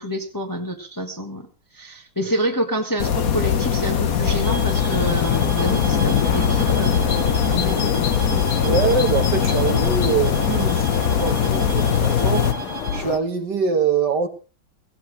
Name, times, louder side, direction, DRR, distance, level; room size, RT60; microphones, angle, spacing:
voice 1, 0.0-1.5 1.7-8.4, equal, 10° left, 1.4 m, -28 dB
sound 1, 3.0-12.5, left 8 dB, 50° left, 1.4 m, -21 dB
sound 2, 4.4-13.1, right 6 dB, 75° right, 3.1 m, -35 dB
sound 3, 4.7-13.2, left 9 dB, 80° left, 2.0 m, -31 dB
voice 2, 8.6-12.7 12.9-14.3, right 5 dB, 55° right, 1.8 m, -23 dB
17.5 x 16.5 x 3.3 m
omnidirectional pair, 2.3 m